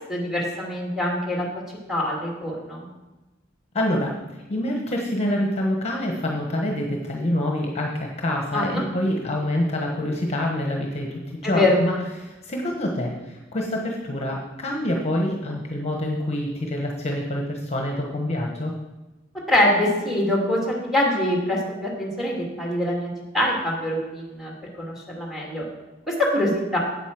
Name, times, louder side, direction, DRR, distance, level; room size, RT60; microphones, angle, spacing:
voice 1, 0.1-1.5 1.9-2.8 8.5-8.8 11.4-11.8 19.5-23.1 23.3-24.5 24.8-25.6 26.1-26.8, left 1 dB, ahead, -2 dB, 2.6 m, -24 dB
voice 2, 3.7-4.1 4.5-18.7, left 1 dB, 35° left, 0 dB, 1.2 m, -26 dB
8.5 x 8.2 x 6.0 m, 1.1 s
head